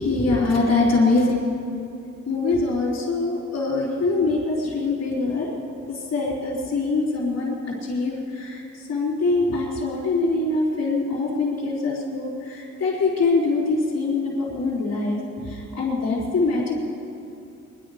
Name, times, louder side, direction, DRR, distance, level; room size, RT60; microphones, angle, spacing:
voice 1, 0.0-1.4 2.3-5.5 5.9-7.5 7.8-16.8, left 3 dB, 55° left, -7 dB, 3.9 m, -23 dB
24.0 x 11.0 x 5.0 m, 2.7 s
wide cardioid pair, 125°, 31 cm